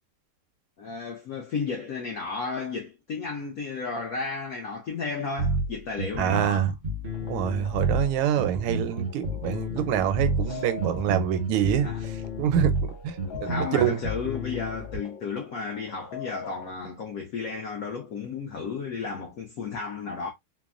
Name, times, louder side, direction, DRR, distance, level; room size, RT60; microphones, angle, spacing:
voice 1, 0.8-6.7 10.4-10.7 11.8-12.1 13.2-20.3, left 4 dB, 75° left, 0.8 m, -33 dB
sound 1, 5.4-15.0, right 1 dB, 45° right, 0.6 m, -30 dB
voice 2, 6.2-6.7 7.2-11.9 12.4-13.1 13.4-14.0, right 9 dB, 85° right, 1.4 m, -26 dB
sound 2, 7.0-16.7, left 6 dB, 60° left, 1.5 m, -44 dB
3.4 x 2.1 x 2.4 m
omnidirectional pair, 2.3 m